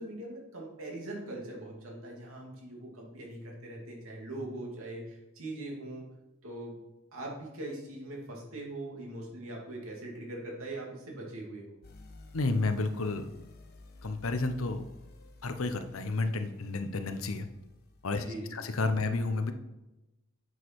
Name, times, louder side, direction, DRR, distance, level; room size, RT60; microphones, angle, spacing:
voice 1, 0.0-6.0 6.4-6.7 7.1-11.8 18.1-18.6, right 1 dB, 90° right, -2 dB, 2.8 m, -41 dB
sound 1, 11.8-18.1, left 2 dB, 50° left, 1.1 m, -54 dB
voice 2, 12.3-13.3 14.0-14.8 15.4-17.5 18.0-18.3 18.5-19.5, left 3 dB, 85° left, 8 dB, 0.9 m, -31 dB
9.0 x 6.4 x 4.7 m, 0.96 s
head